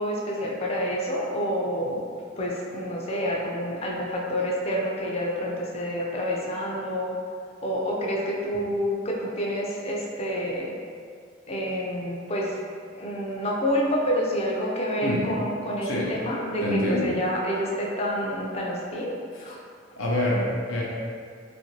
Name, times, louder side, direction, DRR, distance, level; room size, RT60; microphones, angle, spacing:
voice 1, 0.0-2.0 2.4-7.2 7.6-10.7 11.5-12.6 12.9-19.1 19.4-19.6, equal, 30° left, -2 dB, 0.4 m, -28 dB
voice 2, 15.8-16.1 16.6-17.1 20.0-20.8, left 1 dB, 85° left, -4 dB, 0.6 m, -26 dB
2.5 x 2.5 x 3.0 m, 2.2 s
head